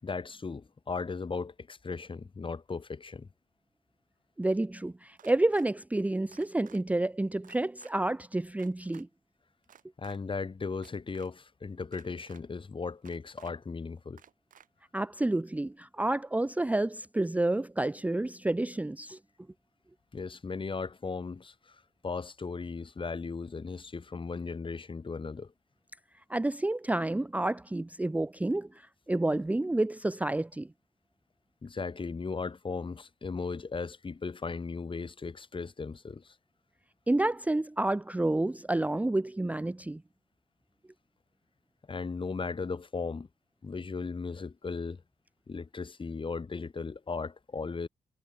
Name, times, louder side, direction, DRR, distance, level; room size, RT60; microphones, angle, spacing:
voice 1, 0.0-3.3 10.0-14.2 20.1-25.5 31.6-36.4 41.9-43.3 43.6-45.0 45.5-47.9, left 4 dB, 35° left, 3.9 m, -37 dB
voice 2, 4.4-9.1 14.9-19.2 26.3-28.7 29.1-30.7 37.1-40.0, right 2 dB, 10° right, 0.6 m, -29 dB
sound 1, 5.2-5.7 6.3-6.8 7.4-7.9 8.6-9.0 9.6-10.2 10.8-11.3 11.9-12.4 13.0-13.5 14.2-14.7, right 8 dB, 70° right, 5.9 m, -56 dB
cardioid pair, 80°, 14 cm